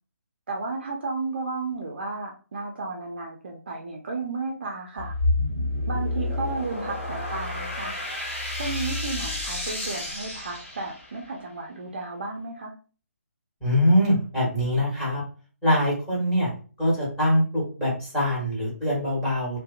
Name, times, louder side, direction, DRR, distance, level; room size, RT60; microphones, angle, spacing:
voice 1, 0.5-5.1 5.9-8.0 8.6-12.7, right 3 dB, 40° right, 0 dB, 0.4 m, -33 dB
sound 1, 5.0-11.3, left 2 dB, 50° left, 1.3 m, -29 dB
voice 2, 13.6-15.2 15.6-16.5 16.8-19.6, equal, 5° left, -6 dB, 1.1 m, -23 dB
2.7 x 2.1 x 2.4 m, 0.38 s
figure-of-eight pair, 145°, 8 cm